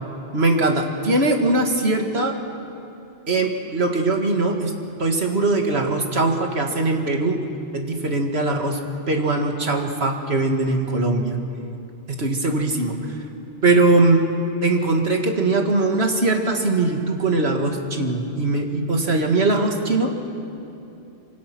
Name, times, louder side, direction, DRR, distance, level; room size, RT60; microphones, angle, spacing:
voice 1, 0.3-2.3 3.3-4.7 5.0-7.4 7.7-8.8 9.1-11.4 12.1-13.1 13.6-14.3 14.6-20.3, right 2 dB, 70° right, 3 dB, 2.4 m, -21 dB
26.0 x 26.0 x 6.2 m, 2.8 s
omnidirectional pair, 1.1 m